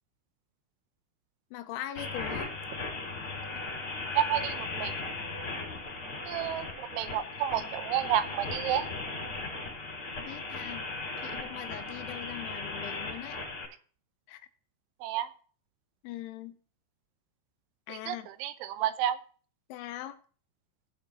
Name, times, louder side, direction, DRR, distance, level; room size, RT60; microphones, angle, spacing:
voice 1, 1.5-2.5 10.2-10.9 11.2-13.4 14.3-14.4 16.0-16.6 17.9-18.3 19.7-20.2, left 13 dB, 80° left, 10 dB, 3.2 m, -41 dB
sound 1, 1.9-13.6, left 3 dB, 30° left, 3.7 m, -37 dB
voice 2, 4.2-4.9 6.3-8.9 15.0-15.3 17.9-19.2, right 11 dB, 80° right, 12 dB, 3.0 m, -30 dB
19.0 x 7.1 x 3.0 m, 0.42 s
omnidirectional pair, 5.7 m